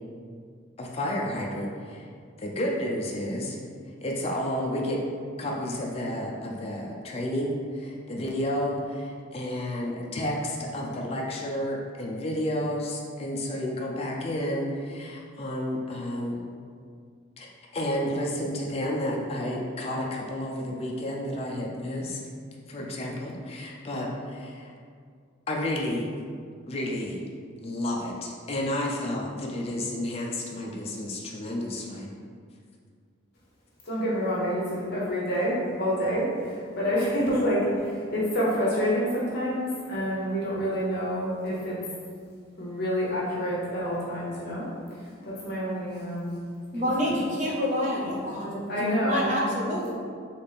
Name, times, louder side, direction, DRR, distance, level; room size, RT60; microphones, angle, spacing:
voice 1, 0.8-2.1 2.4-3.6 4.0-5.0 5.4-16.4 17.4-17.5 17.7-22.2 22.7-24.7 25.5-26.1 26.7-27.2 27.6-32.1, left 1 dB, 30° left, -2 dB, 0.4 m, -31 dB
voice 2, 33.8-41.8 42.6-44.7 44.9-46.4 46.8-47.1 48.7-49.5, equal, 50° left, -7 dB, 0.9 m, -28 dB
voice 3, 46.7-49.9, equal, 35° right, -4 dB, 0.8 m, -28 dB
4.1 x 3.2 x 3.4 m, 2.1 s
head